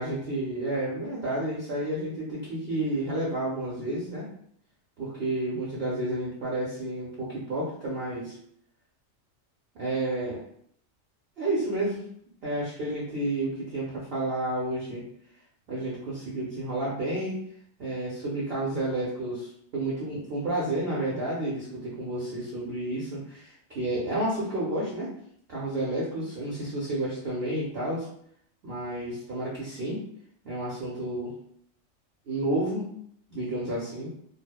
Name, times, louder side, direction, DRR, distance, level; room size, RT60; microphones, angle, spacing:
voice 1, 0.0-4.3 5.0-8.4 9.7-10.4 11.4-12.0 12.4-15.0 15.7-17.4 17.8-25.1 25.5-28.1 28.6-30.0 30.4-31.3 32.3-32.9 33.3-34.1, right 1 dB, 60° right, -6 dB, 0.7 m, -31 dB
2.7 x 2.0 x 2.3 m, 0.66 s
omnidirectional pair, 1.4 m